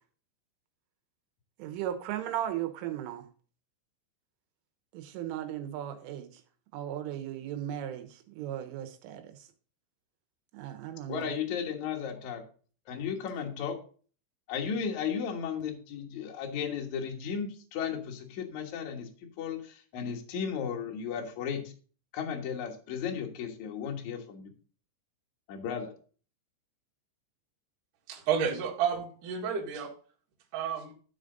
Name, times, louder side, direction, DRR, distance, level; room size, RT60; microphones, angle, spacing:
voice 1, 1.6-3.3 4.9-6.3 6.7-9.4 10.5-11.4, right 11 dB, 85° right, 3.6 m, -36 dB
voice 2, 11.1-12.4 12.9-13.8 14.5-19.1 19.4-21.7 22.1-24.5 25.5-25.9, left 7 dB, 70° left, 1.8 m, -35 dB
voice 3, 28.1-29.9 30.5-30.9, right 7 dB, 55° right, 2.8 m, -31 dB
13.0 x 5.0 x 3.9 m
omnidirectional pair, 5.6 m